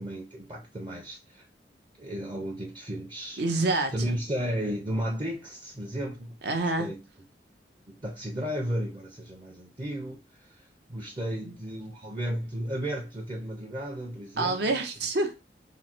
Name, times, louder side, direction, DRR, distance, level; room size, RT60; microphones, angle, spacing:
voice 1, 0.0-1.5 2.0-3.4 3.9-6.4 6.8-7.0 7.9-14.8, equal, 25° right, 0.6 m, -34 dB
voice 2, 3.4-4.2 6.4-6.9 11.4-11.5 14.4-15.3, right 2 dB, 65° right, 0.8 m, -27 dB
3.7 x 2.1 x 4.3 m
head